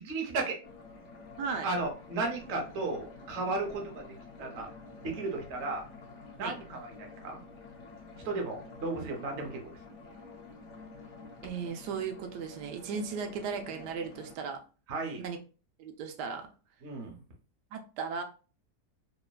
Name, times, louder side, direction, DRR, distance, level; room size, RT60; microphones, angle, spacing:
voice 1, 0.0-0.6 1.6-4.1 4.4-4.7 5.0-5.9 6.4-7.4 8.2-9.8 14.9-15.2 16.8-17.2, right 3 dB, 55° right, 0.8 m, -34 dB
sound 1, 0.6-14.4, left 3 dB, 70° left, 0.7 m, -49 dB
voice 2, 1.4-1.7 6.4-6.6 11.4-14.6 15.2-15.4 15.8-16.5 17.7-18.2, right 6 dB, 90° right, 1.2 m, -36 dB
3.1 x 2.1 x 2.3 m
omnidirectional pair, 1.8 m